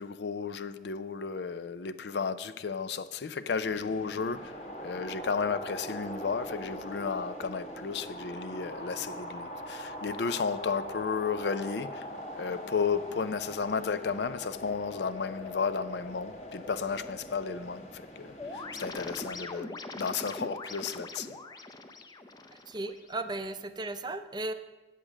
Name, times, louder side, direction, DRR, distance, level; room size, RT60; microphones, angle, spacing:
voice 1, 0.0-4.6 4.8-12.1 12.3-21.4, left 5 dB, 65° left, 0.5 m, -33 dB
sound 1, 3.6-19.4, equal, 35° left, 1.4 m, -42 dB
sound 2, 18.4-23.4, left 2 dB, 20° left, 0.6 m, -42 dB
voice 2, 22.5-24.5, right 2 dB, 25° right, 0.5 m, -36 dB
8.7 x 8.3 x 6.1 m
head